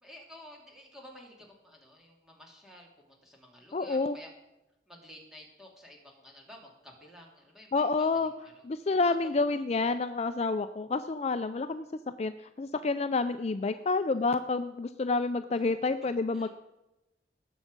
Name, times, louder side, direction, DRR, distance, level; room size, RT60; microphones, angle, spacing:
voice 1, 0.0-4.3 4.9-8.6 8.9-9.9 13.6-13.9 15.6-15.7 16.3-16.5, left 1 dB, 5° right, -1 dB, 2.7 m, -52 dB
voice 2, 3.7-4.2 7.7-8.3 8.7-11.8 12.2-12.3 12.6-16.5, left 3 dB, 35° left, 10 dB, 0.4 m, -29 dB
18.5 x 7.3 x 5.3 m, 0.94 s
head